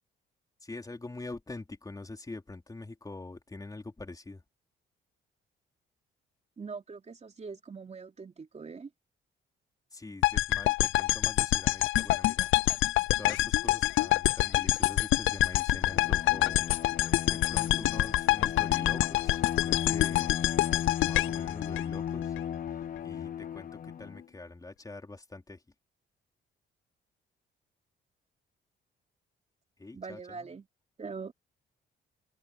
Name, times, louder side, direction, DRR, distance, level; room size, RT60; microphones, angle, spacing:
voice 1, 0.6-4.4 9.9-12.5 13.2-16.7 17.3-20.4 21.0-22.4 23.0-25.6 29.8-30.5, left 2 dB, 20° left, 3.9 m, -44 dB
voice 2, 6.6-8.9 29.9-30.7 31.0-31.3, right 5 dB, 35° right, 3.4 m, -42 dB
sound 1, 10.2-22.4, left 16 dB, 80° left, 0.6 m, -26 dB
Bowed string instrument, 15.8-24.3, left 9 dB, 45° left, 0.8 m, -36 dB
open air
cardioid pair, 90°, 20 cm